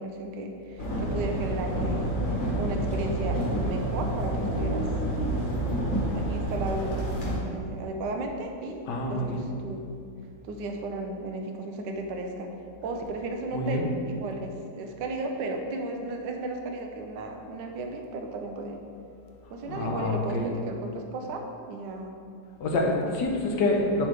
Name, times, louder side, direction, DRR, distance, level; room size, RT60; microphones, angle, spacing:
voice 1, 0.0-2.1 2.5-5.6 6.1-7.1 7.4-9.9 10.4-12.5 12.8-18.8 19.5-22.2 23.1-23.2, right 2 dB, 75° right, 3 dB, 1.2 m, -35 dB
sound 1, 0.8-7.4, right 1 dB, 50° left, 1.5 m, -28 dB
voice 2, 8.9-9.5 13.5-13.9 19.7-20.5 22.6-24.1, left 2 dB, 75° left, 0 dB, 1.5 m, -27 dB
7.7 x 3.2 x 5.1 m, 2.4 s
omnidirectional pair, 1.9 m